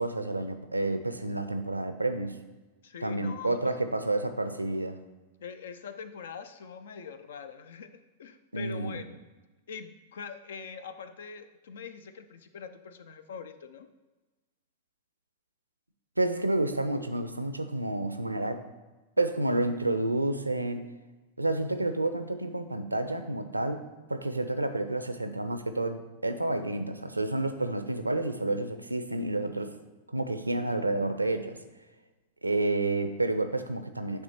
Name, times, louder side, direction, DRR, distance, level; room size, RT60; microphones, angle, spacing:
voice 1, 0.0-2.4 3.0-5.0 8.5-9.0 16.2-18.6 19.2-20.9 21.4-23.8 24.1-29.7 30.1-31.6 32.4-34.2, right 2 dB, 85° right, 9 dB, 0.5 m, -30 dB
voice 2, 2.8-3.6 5.4-9.2 9.7-13.9, left 6 dB, 60° left, 11 dB, 0.4 m, -43 dB
9.3 x 3.4 x 4.3 m, 1.2 s
figure-of-eight pair, 95°, 0 cm